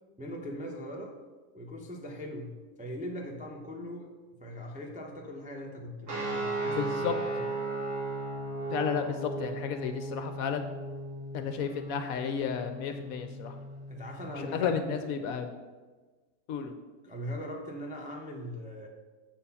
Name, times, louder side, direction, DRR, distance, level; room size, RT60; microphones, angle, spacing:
voice 1, 0.2-1.2 1.5-7.4 13.9-14.7 17.0-18.9, equal, 10° right, 0 dB, 0.4 m, -40 dB
sound 1, 6.1-15.0, right 2 dB, 75° right, 2.3 m, -36 dB
voice 2, 6.8-7.1 8.7-10.7 11.3-13.6 14.4-15.5 16.5-16.7, left 7 dB, 70° left, 7 dB, 0.9 m, -32 dB
7.6 x 4.3 x 5.5 m, 1.3 s
omnidirectional pair, 1.7 m